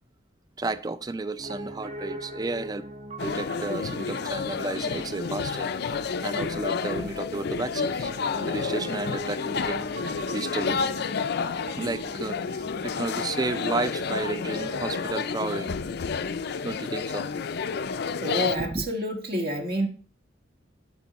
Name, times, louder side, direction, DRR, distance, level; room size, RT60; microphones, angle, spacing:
voice 1, 0.6-2.9 3.2-8.1 8.4-9.9 10.3-10.9 11.8-16.1 16.6-17.3 18.5-18.8, right 3 dB, 20° right, 0.4 m, -32 dB
Piano, 1.4-15.1, right 1 dB, 35° right, 1.0 m, -42 dB
sound 1, 3.2-18.6, left 5 dB, 60° left, 0.4 m, -30 dB
voice 2, 18.2-19.9, right 1 dB, 55° right, 1.5 m, -28 dB
12.0 x 4.4 x 4.1 m
head